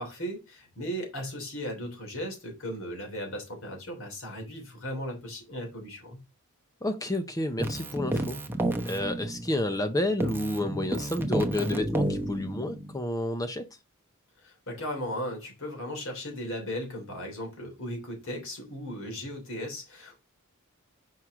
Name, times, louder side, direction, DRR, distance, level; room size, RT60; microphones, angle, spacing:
voice 1, 0.0-6.2 14.4-20.2, equal, 65° left, 3.1 m, -36 dB
voice 2, 6.8-8.4 8.8-13.6, left 1 dB, 15° left, 0.6 m, -30 dB
Keyboard (musical), 7.6-9.9 10.2-13.0, right 1 dB, 10° right, 0.8 m, -31 dB
5.9 x 4.6 x 3.6 m
head